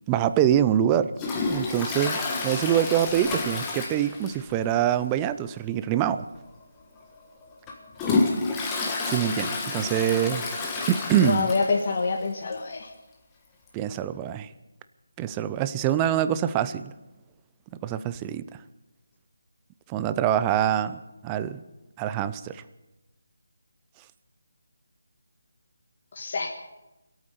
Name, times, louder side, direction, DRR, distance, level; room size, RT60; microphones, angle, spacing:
voice 1, 0.1-1.1 1.5-6.3 9.1-10.4 10.9-11.5 13.7-14.5 15.2-16.9 17.8-18.5 19.9-21.6 22.0-22.6, right 10 dB, 15° right, 13 dB, 0.4 m, -25 dB
Toilet flush, 1.2-4.6 4.9-5.0 5.4-5.5 6.4-6.5 7.0-11.9 12.3-12.4 12.5-12.6 13.7-13.8, left 3 dB, 10° left, 1.5 m, -29 dB
voice 2, 11.2-12.9 26.1-26.5, left 4 dB, 40° left, 0 dB, 1.4 m, -26 dB
23.5 x 8.8 x 6.8 m, 1.0 s
figure-of-eight pair, 170°, 0 cm